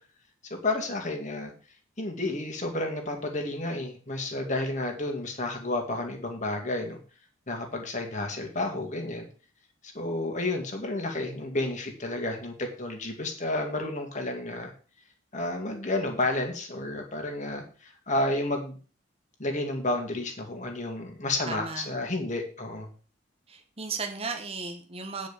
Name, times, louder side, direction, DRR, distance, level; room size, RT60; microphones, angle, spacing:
voice 1, 0.5-1.5 2.0-7.0 7.5-9.3 9.9-14.7 15.3-18.8 19.4-22.9, left 2 dB, 35° left, 3 dB, 2.2 m, -31 dB
voice 2, 21.5-21.8 23.5-25.3, right 4 dB, 30° right, 4 dB, 1.2 m, -35 dB
9.7 x 5.3 x 6.8 m, 0.38 s
head